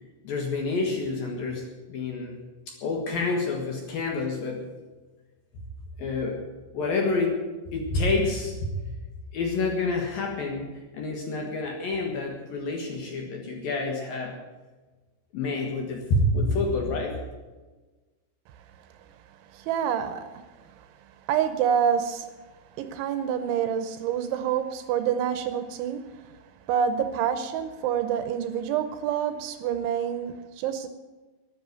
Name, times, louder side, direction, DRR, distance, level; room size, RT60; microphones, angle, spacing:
voice 1, 0.2-1.6 1.9-2.4 2.7-4.6 6.0-6.4 6.7-7.4 7.7-8.7 9.3-14.3 15.3-17.1, left 3 dB, 60° left, 1 dB, 2.6 m, -28 dB
voice 2, 19.5-20.3 21.3-22.3 22.8-26.0 26.7-30.9, right 8 dB, 80° right, 10 dB, 3.0 m, -27 dB
11.5 x 10.5 x 9.3 m, 1.2 s
omnidirectional pair, 5.8 m